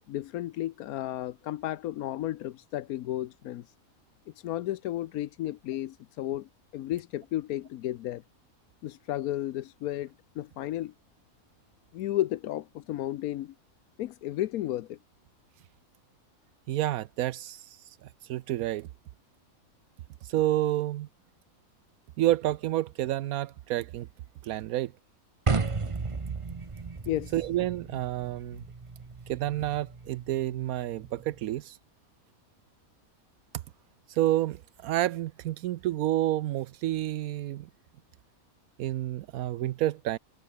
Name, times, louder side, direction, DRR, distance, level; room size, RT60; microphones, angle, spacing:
voice 1, 0.1-3.7 4.3-8.2 8.8-10.9 11.9-13.5 14.0-15.0 27.1-27.3, left 14 dB, 85° left, 1.1 m, -33 dB
voice 2, 16.7-18.0 18.2-18.9 20.2-21.1 22.2-24.1 24.4-24.9 27.3-28.6 29.3-31.8 34.1-37.7 38.8-40.2, right 14 dB, 80° right, 1.0 m, -29 dB
sound 1, 25.5-31.6, right 4 dB, 25° right, 0.9 m, -35 dB
omnidirectional pair, 1.5 m